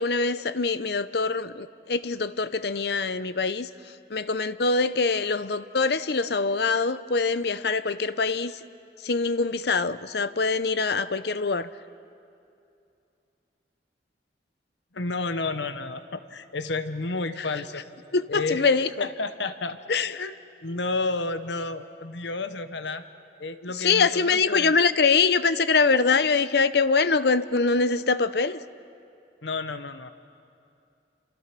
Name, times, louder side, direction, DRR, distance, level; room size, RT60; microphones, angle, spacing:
voice 1, 0.0-8.6 9.0-11.7 17.4-17.5 18.1-19.1 19.9-20.2 23.7-28.6, left 4 dB, 65° left, 0.7 m, -24 dB
voice 2, 14.9-17.8 18.3-18.6 19.0-19.8 20.1-23.0 23.4-24.7 29.4-30.1, left 3 dB, 80° left, 1.1 m, -31 dB
28.5 x 27.5 x 6.0 m
head